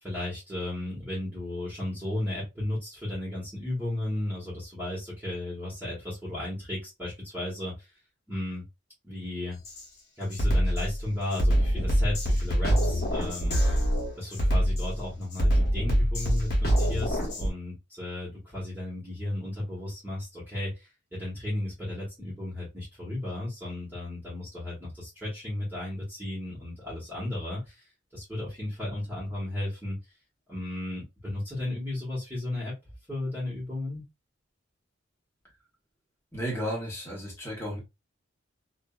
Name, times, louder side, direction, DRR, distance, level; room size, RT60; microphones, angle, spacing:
voice 1, 0.0-7.9 8.3-8.6 9.0-9.6 10.2-13.6 14.1-27.8 28.1-30.0 30.5-32.8 33.1-34.0, left 1 dB, 10° right, 1.3 m, -34 dB
Drum kit, 9.6-9.8 10.3-17.5, equal, 50° left, 1.1 m, -25 dB
voice 2, 36.3-37.8, equal, 10° left, 1.2 m, -33 dB
2.6 x 2.5 x 2.4 m
head